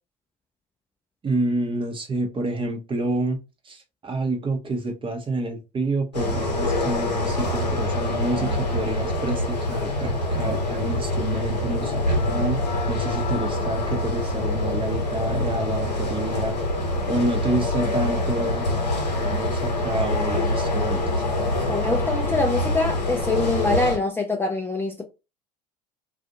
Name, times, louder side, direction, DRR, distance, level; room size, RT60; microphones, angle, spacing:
voice 1, 1.2-3.4 3.6-12.6 12.9-16.6 17.1-18.7 19.2-21.2, right 2 dB, 25° right, 0.8 m, -28 dB
sound 1, 6.1-24.0, left 1 dB, 85° left, 1.0 m, -25 dB
voice 2, 21.7-25.0, left 3 dB, 10° left, 0.5 m, -24 dB
2.5 x 2.4 x 2.7 m
figure-of-eight pair, 65°, 21 cm